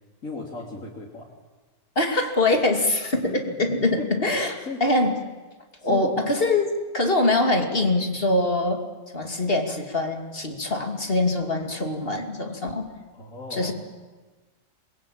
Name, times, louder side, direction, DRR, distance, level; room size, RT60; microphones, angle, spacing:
voice 1, 0.2-1.3 3.2-4.3 4.6-4.8 5.8-6.3 13.1-13.7, left 3 dB, 85° left, -2 dB, 3.6 m, -36 dB
voice 2, 2.0-5.2 5.8-8.8 9.1-12.9 13.5-13.7, left 2 dB, 45° left, 4 dB, 2.9 m, -23 dB
27.5 x 22.0 x 8.8 m, 1.3 s
omnidirectional pair, 1.4 m